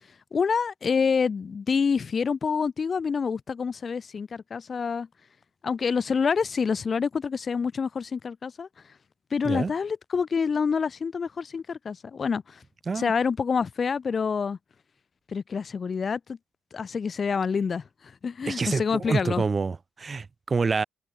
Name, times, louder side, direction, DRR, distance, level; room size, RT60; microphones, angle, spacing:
voice 1, 0.3-5.1 5.6-8.7 9.3-12.6 12.9-14.6 15.3-16.4 16.7-19.4, left 5 dB, 40° left, 5.4 m, -27 dB
voice 2, 18.5-20.8, right 4 dB, 35° right, 7.1 m, -27 dB
cardioid pair, 90°, 0 cm